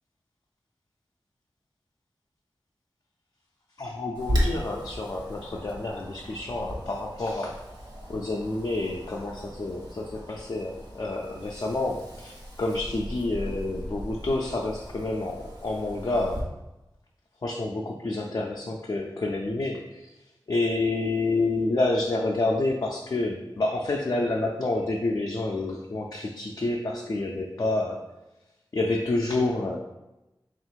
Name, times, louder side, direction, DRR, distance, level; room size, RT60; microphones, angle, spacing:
voice 1, 3.8-7.6 8.1-12.3 12.6-16.5 17.4-20.1 20.5-28.1 28.7-29.8, left 2 dB, 50° left, -1 dB, 0.4 m, -28 dB
Wind, 4.1-16.4, equal, 60° right, 1.0 m, -36 dB
3.4 x 2.4 x 4.5 m, 0.98 s
wide cardioid pair, 85°, 8 cm